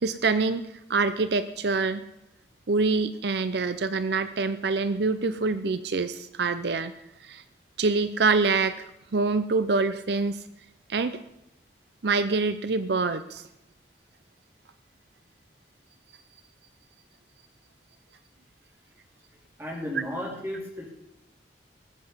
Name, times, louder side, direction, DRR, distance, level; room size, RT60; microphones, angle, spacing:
voice 1, 0.0-0.6 0.9-2.0 2.7-6.9 7.2-7.4 7.8-8.9 9.1-10.4 10.9-11.2 12.0-13.5 19.9-20.0, right 4 dB, 65° right, 12 dB, 0.6 m, -25 dB
voice 2, 19.6-20.9, equal, 15° right, -1 dB, 3.9 m, -34 dB
19.5 x 7.7 x 7.2 m, 0.90 s
head